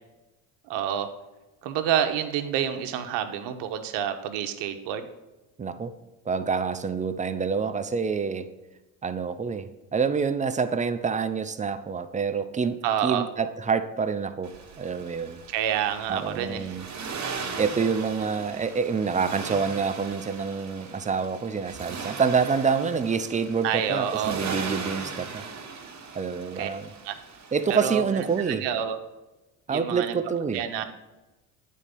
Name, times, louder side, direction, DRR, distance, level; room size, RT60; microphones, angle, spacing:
voice 1, 0.7-1.1 1.6-5.1 12.8-13.3 15.5-16.8 23.6-24.4 26.6-26.7 27.0-27.2 27.7-29.0 29.7-30.1 30.5-30.8, right 9 dB, 70° right, 7 dB, 0.9 m, -28 dB
voice 2, 5.6-5.9 6.3-8.5 9.0-15.4 16.1-16.8 17.6-25.4 26.1-26.9 27.5-28.6 29.7-30.6, right 5 dB, 15° right, 11 dB, 0.4 m, -27 dB
Accelerating revving vroom, 14.4-28.5, right 5 dB, 40° right, 1.4 m, -39 dB
8.6 x 4.2 x 5.2 m, 1.1 s
supercardioid pair, 75°, 44 cm